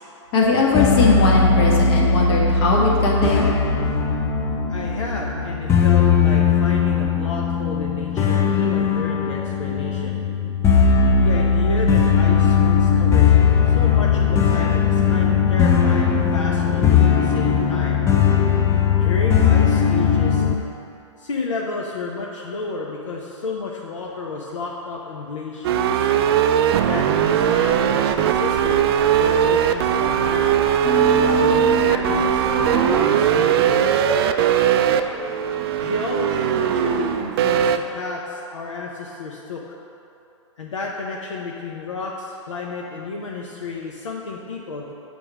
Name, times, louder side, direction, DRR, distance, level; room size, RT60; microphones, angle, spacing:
voice 1, 0.3-3.5, left 3 dB, 50° left, -2 dB, 1.4 m, -19 dB
sound 1, 0.7-20.5, left 6 dB, 15° left, 0.5 m, -18 dB
voice 2, 4.7-10.2 11.1-13.3 13.7-18.0 18.9-20.5 21.2-26.1 26.8-28.8 29.2-30.6 31.1-33.9 35.8-39.6 40.6-44.9, left 3 dB, 85° left, -2 dB, 0.7 m, -31 dB
sound 2, 25.6-37.8, right 9 dB, 55° right, 0.4 m, -19 dB
sound 3, 26.7-37.0, left 1 dB, 10° right, 0.8 m, -32 dB
6.9 x 3.4 x 6.1 m, 2.8 s
hypercardioid pair, 120°, 16 cm